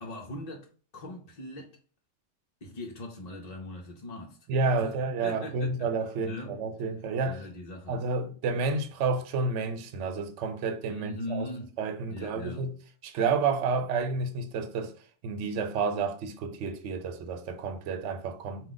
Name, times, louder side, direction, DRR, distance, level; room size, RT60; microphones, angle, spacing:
voice 1, 0.0-1.8 2.6-4.4 4.7-4.9 5.2-6.0 6.2-6.6 7.2-8.0 10.9-11.7 12.1-12.7, left 1 dB, 40° left, 0.7 m, -40 dB
voice 2, 4.5-7.4 7.9-11.5 11.8-12.7 13.0-14.9 15.2-18.7, right 4 dB, 75° right, 0.9 m, -30 dB
4.7 x 2.5 x 3.8 m
omnidirectional pair, 1.2 m